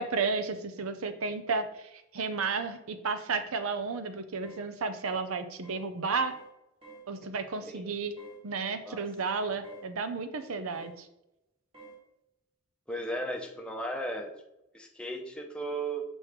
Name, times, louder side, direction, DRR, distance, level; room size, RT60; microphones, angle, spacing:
voice 1, 0.0-6.3 7.1-8.1 8.4-11.1, right 4 dB, 75° right, 9 dB, 0.6 m, -32 dB
sound 1, 4.4-4.7 5.0-5.3 5.6-5.9 6.3-6.5 6.8-7.1 8.2-8.4 9.6-9.9 10.7-11.0 11.7-12.0, right 4 dB, 25° right, 2.1 m, -50 dB
voice 2, 12.9-14.3 14.7-16.0, right 1 dB, 5° left, 1 dB, 0.7 m, -35 dB
6.2 x 3.1 x 5.0 m, 0.89 s
head